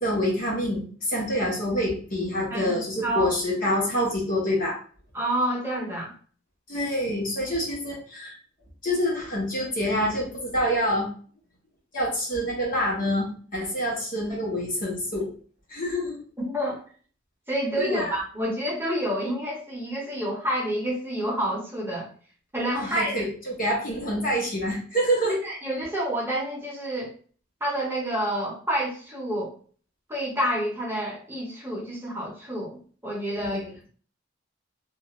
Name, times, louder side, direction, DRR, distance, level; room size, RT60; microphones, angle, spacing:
voice 1, 0.0-4.8 6.7-8.4 8.8-11.1 11.9-15.3 15.7-16.2 17.8-18.2 22.7-25.4 33.3-33.7, equal, 45° left, -2 dB, 1.0 m, -26 dB
voice 2, 2.5-3.3 5.1-6.1 16.4-16.8 17.5-22.1 22.5-23.1 25.4-27.1 27.6-29.5 30.1-33.6, equal, 10° right, -4 dB, 0.8 m, -29 dB
2.4 x 2.4 x 3.0 m, 0.42 s
head